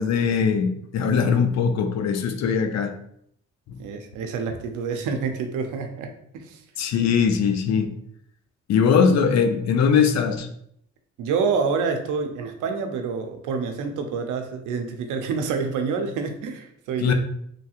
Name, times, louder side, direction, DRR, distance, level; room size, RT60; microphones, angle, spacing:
voice 1, 0.0-2.9 3.7-3.8 6.8-7.9 8.7-10.5 17.0-17.1, left 6 dB, 60° left, 0.5 m, -21 dB
voice 2, 3.8-6.6 11.2-17.1, right 5 dB, 85° right, 0.5 m, -27 dB
3.2 x 2.7 x 2.4 m
cardioid pair, 90°, 30 cm